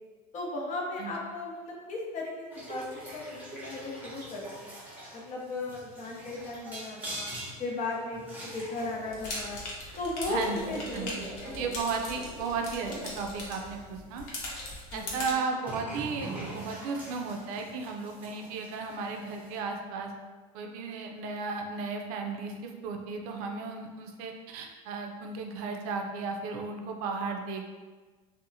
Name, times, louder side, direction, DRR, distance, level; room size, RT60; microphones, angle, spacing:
voice 1, 0.3-2.8 3.1-4.7 5.1-7.3 7.6-9.6 10.0-11.7 14.9-15.4, left 2 dB, 40° left, -2 dB, 0.7 m, -36 dB
sound 1, 2.5-14.7 15.6-19.6, right 1 dB, 10° right, 0.8 m, -44 dB
sound 2, 9.1-15.3, left 2 dB, 75° left, 0.8 m, -40 dB
voice 2, 10.3-10.6 10.9-11.2 11.6-14.3 14.9-20.1 20.5-27.7, right 4 dB, 75° right, 3 dB, 0.4 m, -35 dB
2.7 x 2.0 x 2.6 m, 1.4 s
supercardioid pair, 100°, 19 cm